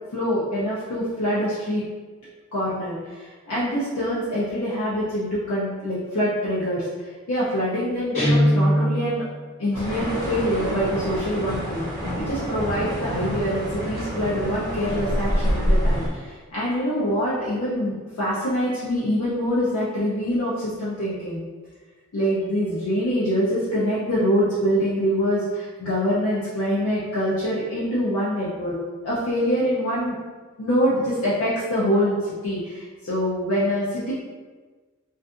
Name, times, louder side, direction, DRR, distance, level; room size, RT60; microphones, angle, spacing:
voice 1, 0.1-1.8 2.5-9.2 9.6-11.8 12.2-21.4 22.1-28.7 29.0-30.1 30.6-34.1, equal, 80° left, -9 dB, 0.6 m, -25 dB
Guitar, 8.1-9.3, equal, 35° left, 1.0 m, -20 dB
sound 1, 9.7-16.1, equal, 15° right, 0.7 m, -26 dB
2.6 x 2.4 x 2.4 m, 1.4 s
head